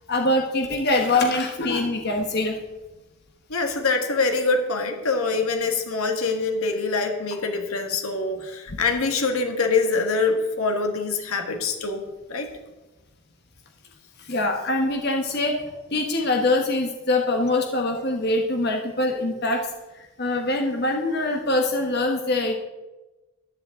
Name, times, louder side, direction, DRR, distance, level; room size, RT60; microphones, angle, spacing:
voice 1, 0.1-2.6 8.7-8.8 14.2-15.6 15.9-19.7 19.9-22.5, left 2 dB, 50° left, 3 dB, 1.2 m, -23 dB
voice 2, 3.5-12.0 12.3-12.6, left 4 dB, 85° left, 4 dB, 1.6 m, -24 dB
14.0 x 11.0 x 3.7 m, 1.1 s
head